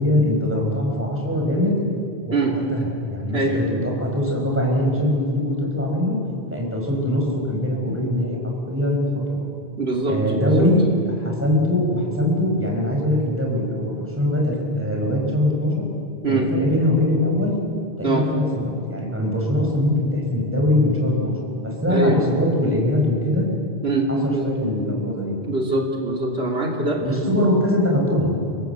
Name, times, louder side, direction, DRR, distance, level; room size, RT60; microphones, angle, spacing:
voice 1, 0.0-1.8 2.3-2.4 2.7-6.2 6.5-8.4 8.7-9.1 9.3-9.4 10.1-10.9 11.2-15.8 16.3-17.5 18.0-21.3 21.6-23.5 24.1-25.4 27.0-28.4, left 1 dB, 10° right, -1 dB, 5.3 m, -22 dB
voice 2, 9.8-10.7 16.2-16.5 18.0-18.3 21.9-22.2 23.8-24.5 25.4-27.0 27.4-27.5, right 2 dB, 80° right, 0 dB, 3.1 m, -23 dB
30.0 x 19.0 x 8.1 m, 2.4 s
omnidirectional pair, 1.0 m